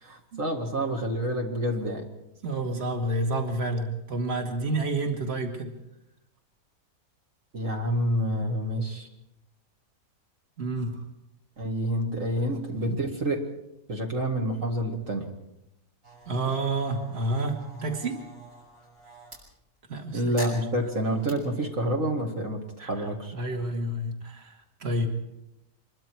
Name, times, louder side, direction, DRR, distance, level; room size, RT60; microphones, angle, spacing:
voice 1, 0.0-2.0 7.5-9.1 11.6-13.5 13.9-15.3 20.1-23.3, right 1 dB, 60° right, 0 dB, 2.5 m, -28 dB
voice 2, 2.4-5.7 10.6-11.0 16.3-18.2 19.9-20.3 21.3-21.4 22.8-23.1 23.3-25.1, right 2 dB, 45° right, 3 dB, 2.4 m, -29 dB
sound 1, 16.0-19.4 20.4-21.4, right 2 dB, 80° right, 7.1 m, -44 dB
26.0 x 22.5 x 4.7 m, 0.87 s
omnidirectional pair, 1.5 m